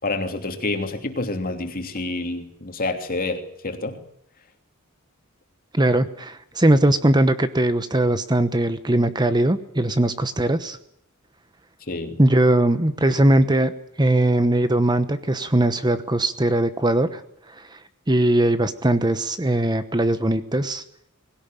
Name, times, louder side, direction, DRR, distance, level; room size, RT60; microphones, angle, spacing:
voice 1, 0.0-4.0 11.9-12.2, left 2 dB, 40° left, 6 dB, 2.9 m, -28 dB
voice 2, 5.7-10.8 12.2-13.7 14.0-17.2 17.5-17.8 18.1-20.8, right 1 dB, 20° right, 11 dB, 1.0 m, -20 dB
20.5 x 17.5 x 9.1 m, 0.75 s
head